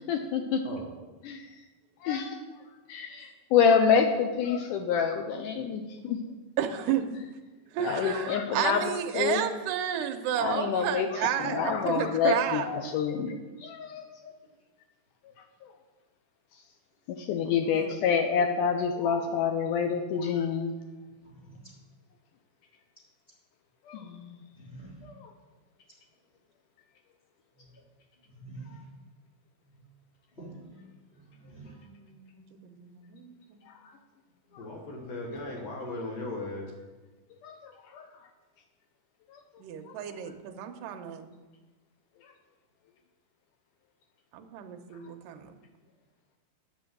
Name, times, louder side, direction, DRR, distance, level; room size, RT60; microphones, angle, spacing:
voice 1, 0.1-0.6 1.2-1.5 2.0-2.4 2.9-6.2 7.8-9.4 10.4-14.3 17.1-20.8 23.9-24.4 25.0-25.3 37.4-38.0 39.3-39.4 39.8-40.0, left 6 dB, 80° left, 5 dB, 1.9 m, -27 dB
voice 2, 6.6-7.1 7.7-12.7 17.4-18.0 31.6-33.8 39.6-41.3 44.3-45.5, right 9 dB, 80° right, 5 dB, 2.3 m, -32 dB
voice 3, 21.3-21.7 24.6-25.0 28.3-28.8 30.3-30.7 31.1-31.8 34.5-34.7, right 2 dB, 20° left, -6 dB, 3.0 m, -47 dB
voice 4, 34.6-36.7, left 2 dB, 60° left, -1 dB, 2.0 m, -37 dB
8.3 x 6.2 x 7.7 m, 1.2 s
omnidirectional pair, 4.3 m